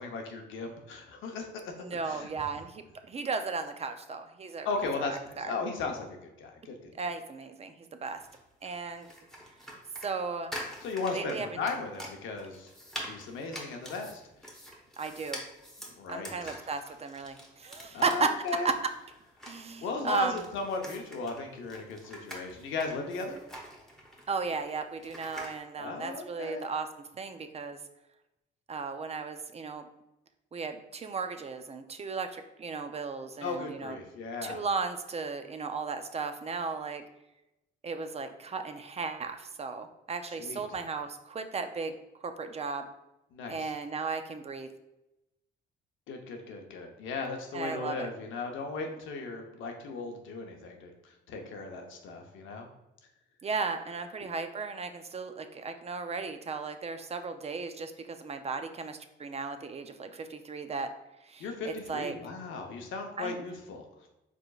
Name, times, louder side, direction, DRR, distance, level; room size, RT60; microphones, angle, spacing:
voice 1, 0.0-1.7 2.0-2.3 4.6-6.9 10.8-12.7 13.1-14.2 16.0-16.5 17.9-18.7 19.8-23.4 25.8-26.7 33.4-34.6 40.4-40.6 43.3-43.7 46.1-52.7 61.4-63.8, left 3 dB, 80° left, 3 dB, 0.8 m, -36 dB
voice 2, 1.8-4.7 5.0-5.5 7.0-8.2 8.6-9.1 10.0-10.5 11.1-11.6 15.0-15.4 16.1-18.9 19.4-20.4 24.3-26.9 27.2-27.8 28.7-29.9 30.5-34.0 34.4-37.0 37.8-42.0 42.2-42.9 43.5-44.7 47.5-48.1 53.4-60.9 61.2-62.2 63.2-63.4, right 4 dB, 30° right, 8 dB, 0.4 m, -35 dB
sound 1, 8.1-25.6, equal, ahead, 1.1 m, -46 dB
4.9 x 3.7 x 2.3 m, 0.92 s
cardioid pair, 90°, 20 cm